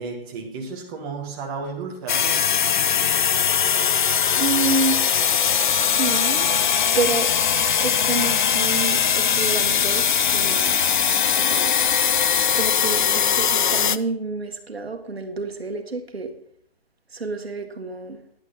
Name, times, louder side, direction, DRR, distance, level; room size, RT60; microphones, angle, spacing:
voice 1, 0.0-2.5, right 4 dB, 20° right, -1 dB, 1.9 m, -33 dB
sound 1, 2.1-14.0, left 8 dB, 55° left, 0.5 m, -20 dB
voice 2, 4.4-5.0 5.7-6.5 7.0-7.3 7.8-10.8 11.4-11.7 12.5-16.3 17.1-18.2, right 3 dB, 85° right, 5 dB, 1.8 m, -28 dB
10.5 x 9.3 x 4.1 m, 0.65 s
figure-of-eight pair, 150°, 30 cm